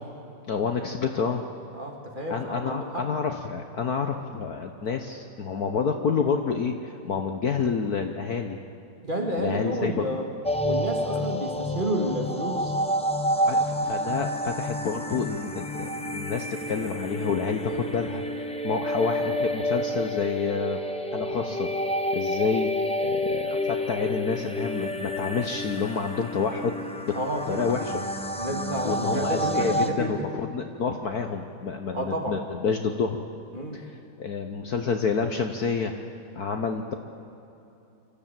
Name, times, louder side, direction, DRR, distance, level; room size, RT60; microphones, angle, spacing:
voice 1, 0.5-1.4 2.3-8.6 9.4-10.1 11.1-11.2 13.4-20.8 21.1-21.7 22.1-22.7 23.0-26.9 27.5-28.0 28.8-33.2 33.7-33.9 34.2-35.9 36.3-36.9, left 5 dB, 55° left, 5 dB, 1.3 m, -28 dB
voice 2, 1.7-3.1 9.0-10.3 10.6-12.7 27.1-27.9 28.4-30.1 31.9-32.4 33.5-33.8, right 1 dB, 25° right, 1 dB, 2.3 m, -30 dB
sound 1, 10.4-29.9, equal, 5° left, 0.6 m, -29 dB
24.5 x 14.0 x 9.0 m, 2.9 s
omnidirectional pair, 2.3 m